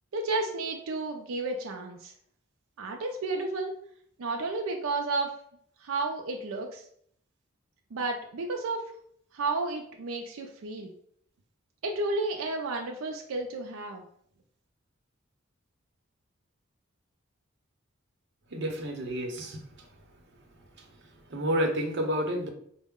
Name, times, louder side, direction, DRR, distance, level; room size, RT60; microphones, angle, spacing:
voice 1, 0.1-2.1 2.8-3.8 4.2-5.3 5.8-6.8 7.9-8.8 9.3-10.9 11.8-14.0, right 3 dB, 90° right, 3 dB, 0.4 m, -32 dB
voice 2, 18.5-19.6 21.3-22.5, equal, 55° right, 2 dB, 0.7 m, -29 dB
4.6 x 2.1 x 3.5 m, 0.65 s
head